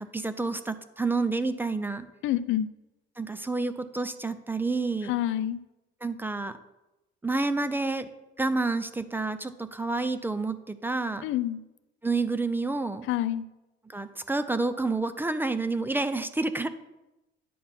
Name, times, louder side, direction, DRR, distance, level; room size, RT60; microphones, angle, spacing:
voice 1, 0.0-2.1 3.2-5.1 6.0-6.6 7.2-8.1 8.4-11.2 12.0-13.1 13.9-16.7, right 3 dB, 10° right, 12 dB, 0.4 m, -29 dB
voice 2, 2.2-2.7 5.1-5.6 11.2-11.6 13.1-13.5, left 12 dB, 65° left, 14 dB, 0.5 m, -27 dB
10.0 x 4.2 x 7.2 m, 0.98 s
cardioid pair, 125°, 21 cm